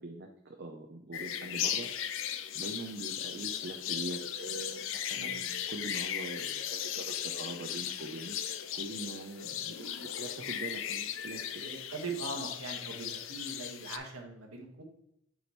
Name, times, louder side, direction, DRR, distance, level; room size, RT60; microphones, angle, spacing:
voice 1, 0.0-1.9 2.5-8.4 8.7-11.6, right 2 dB, 50° right, 2 dB, 0.6 m, -43 dB
sound 1, 1.1-14.0, left 10 dB, 60° left, 0.4 m, -37 dB
voice 2, 5.1-5.5 11.5-14.8, right 3 dB, 90° right, 1 dB, 1.6 m, -41 dB
7.9 x 5.0 x 3.1 m, 0.76 s
head